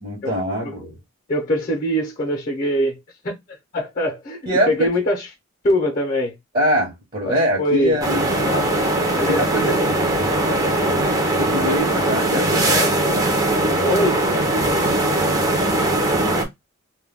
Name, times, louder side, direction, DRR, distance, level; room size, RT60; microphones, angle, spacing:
voice 1, 0.0-1.0 4.5-4.9 6.5-8.3 9.3-9.6 11.4-12.7, equal, 45° right, 0.9 m, -23 dB
voice 2, 1.3-3.0 3.2-3.4 3.7-5.3 5.6-6.4 7.2-8.0 8.5-8.7 9.2-9.8 12.6-13.4 13.8-14.2, equal, 40° left, 0.6 m, -23 dB
sound 1, 8.0-16.5, right 1 dB, 20° right, 0.6 m, -20 dB
2.2 x 2.2 x 3.4 m
head